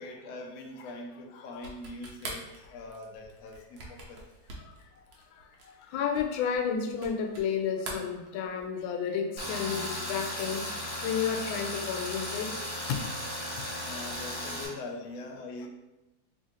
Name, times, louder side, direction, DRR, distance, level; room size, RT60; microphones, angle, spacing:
voice 1, 0.0-2.4 2.7-4.2 5.7-5.9 13.8-15.7, left 2 dB, 70° left, 1 dB, 0.8 m, -42 dB
sound 1, 1.5-7.5 7.8-8.8, right 2 dB, 60° right, 1.1 m, -44 dB
voice 2, 5.9-10.6 11.0-12.5 12.9-13.0, left 7 dB, 90° left, 3 dB, 1.3 m, -31 dB
Tools, 9.4-14.7, left 1 dB, 40° left, 1.0 m, -36 dB
3.4 x 2.5 x 4.0 m, 1.0 s
omnidirectional pair, 2.1 m